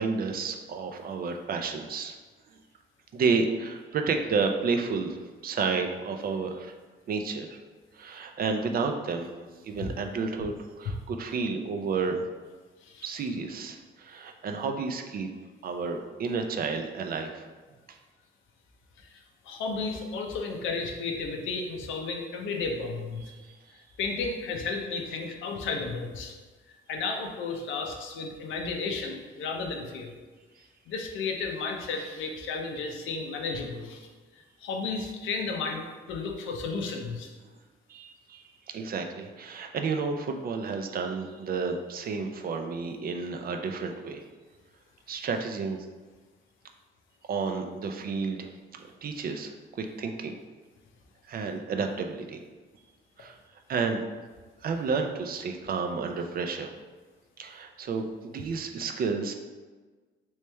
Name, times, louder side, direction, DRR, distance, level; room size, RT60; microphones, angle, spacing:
voice 1, 0.0-2.2 3.1-5.2 5.4-6.7 7.1-7.6 7.9-9.3 9.6-12.3 13.0-15.3 15.6-17.5 17.9-18.0 23.2-23.6 37.4-37.5 37.9-44.2 45.1-45.9 47.3-48.5 49.0-50.4 51.3-52.4 53.2-53.4 53.7-54.0 54.6-56.7 57.4-59.3, right 4 dB, 50° right, 5 dB, 0.4 m, -31 dB
voice 2, 12.8-13.1 19.0-23.2 24.0-26.3 26.9-30.1 30.9-34.1 34.6-37.3, left 4 dB, 85° left, 2 dB, 0.6 m, -33 dB
3.1 x 3.1 x 3.3 m, 1.4 s
cardioid pair, 90°, 20 cm